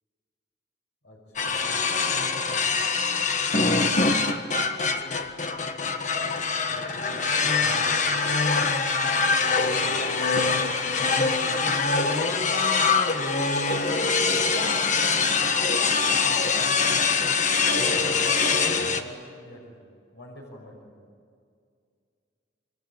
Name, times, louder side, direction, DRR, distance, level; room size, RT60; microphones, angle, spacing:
voice 1, 1.0-1.9 3.5-4.3 4.8-5.2 6.7-8.2 9.3-10.0 10.9-12.3 13.1-17.2 17.7-18.5 18.8-19.9 20.1-20.9, left 1 dB, 75° left, -1 dB, 5.9 m, -44 dB
sound 1, 1.4-19.0, left 4 dB, 40° left, 1.5 m, -24 dB
27.0 x 24.5 x 8.8 m, 2.2 s
head